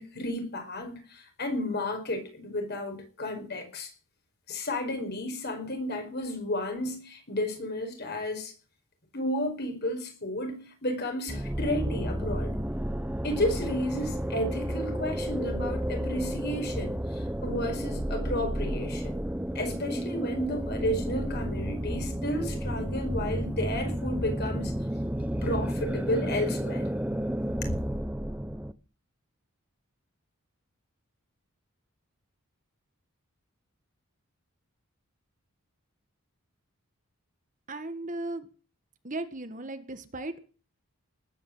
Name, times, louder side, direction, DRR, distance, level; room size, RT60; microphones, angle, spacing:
voice 1, 0.0-3.9 4.5-8.5 9.1-12.6 13.2-19.2 19.5-24.7 25.4-26.9, left 1 dB, 45° left, 5.0 m, -32 dB
sound 1, 11.3-28.7, equal, 5° right, 0.7 m, -31 dB
voice 2, 37.7-38.5 39.0-40.4, right 2 dB, 35° right, 1.5 m, -36 dB
19.5 x 9.4 x 7.8 m
head